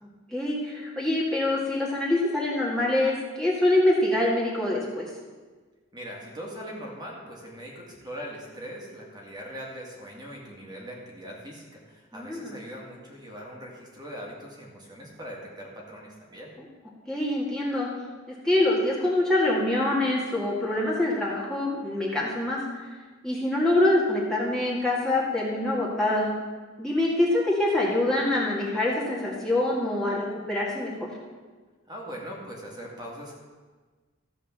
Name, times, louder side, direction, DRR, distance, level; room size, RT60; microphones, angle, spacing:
voice 1, 0.0-5.1 12.1-12.6 17.1-17.9 18.3-22.9 23.2-26.3 26.8-31.1, left 1 dB, 5° left, -6 dB, 1.9 m, -25 dB
voice 2, 5.9-16.5 31.9-33.3, equal, 20° right, -2 dB, 2.0 m, -41 dB
14.0 x 4.9 x 7.4 m, 1.4 s
head